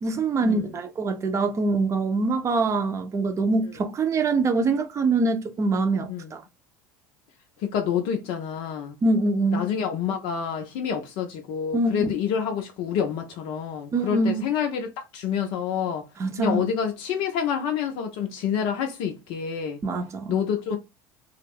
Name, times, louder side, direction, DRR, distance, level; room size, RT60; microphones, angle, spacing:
voice 1, 0.0-6.4 9.0-9.7 11.7-12.1 13.9-14.4 16.2-16.6 19.8-20.4, right 3 dB, 30° right, 0.6 m, -24 dB
voice 2, 7.6-9.0 9.5-16.0 16.4-19.8 20.3-20.8, left 8 dB, 60° left, 0.5 m, -28 dB
2.3 x 2.0 x 3.3 m
hypercardioid pair, 80°, 10 cm